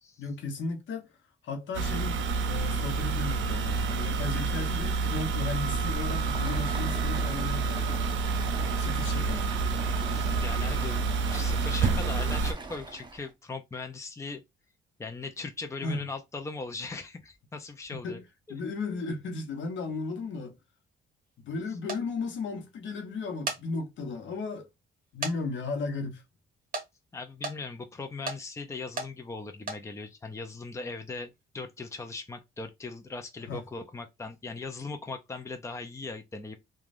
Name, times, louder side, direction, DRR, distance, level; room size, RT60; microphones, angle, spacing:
voice 1, 0.2-1.1 1.4-8.0 8.8-9.5 15.8-16.0 17.9-18.2 18.5-20.6 21.4-24.7 25.1-26.2 33.5-33.6, left 3 dB, 70° left, 0.9 m, -35 dB
sound 1, 1.7-12.5, right 4 dB, 75° right, 0.6 m, -28 dB
Stream, 5.8-13.3, right 2 dB, 25° right, 0.8 m, -42 dB
voice 2, 10.1-11.0 11.3-14.4 15.0-18.2 27.1-36.6, left 3 dB, 15° left, 0.5 m, -39 dB
sound 2, 21.9-22.0 23.2-23.6 24.2-24.3 25.2-25.4 25.7-25.8 26.7-26.9 27.4-27.6 28.3-28.4 29.0-29.1 29.6-29.8, right 3 dB, 45° right, 1.0 m, -33 dB
3.1 x 2.3 x 2.5 m
cardioid pair, 90°, 20 cm